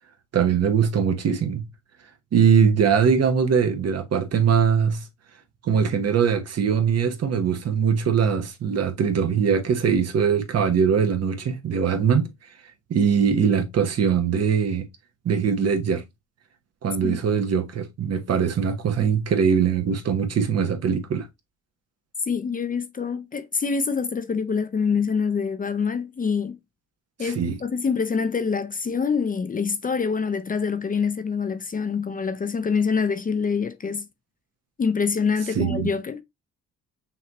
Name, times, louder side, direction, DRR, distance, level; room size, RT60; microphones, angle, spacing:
voice 1, 0.3-1.6 2.3-5.0 5.6-12.3 12.9-14.9 15.2-16.0 16.8-21.3 27.2-27.6 35.5-35.9, right 7 dB, 55° right, 1.1 m, -21 dB
voice 2, 22.3-26.6 27.2-34.1 34.8-36.2, left 5 dB, 30° left, 0.6 m, -25 dB
5.8 x 2.8 x 2.9 m
cardioid pair, 90°, 30 cm